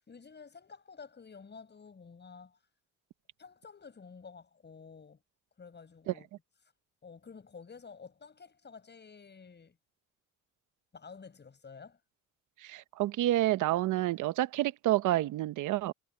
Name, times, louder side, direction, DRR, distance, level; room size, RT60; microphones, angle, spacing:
voice 1, 0.0-2.6 3.4-5.2 5.6-6.3 7.0-9.8 10.9-12.0, left 5 dB, 35° left, 6.5 m, -51 dB
voice 2, 12.6-15.9, right 15 dB, 85° right, 0.9 m, -29 dB
cardioid pair, 90°, 30 cm